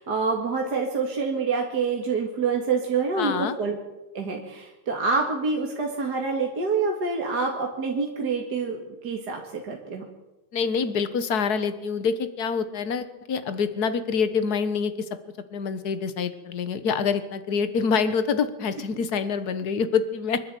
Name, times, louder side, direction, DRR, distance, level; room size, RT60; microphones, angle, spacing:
voice 1, 0.0-3.8 4.1-8.8 9.0-10.0, right 4 dB, 50° right, 1 dB, 2.6 m, -26 dB
voice 2, 3.2-3.5 10.5-15.1 15.5-20.4, left 6 dB, 50° left, 12 dB, 1.7 m, -26 dB
26.0 x 11.0 x 9.2 m, 1.0 s
omnidirectional pair, 2.3 m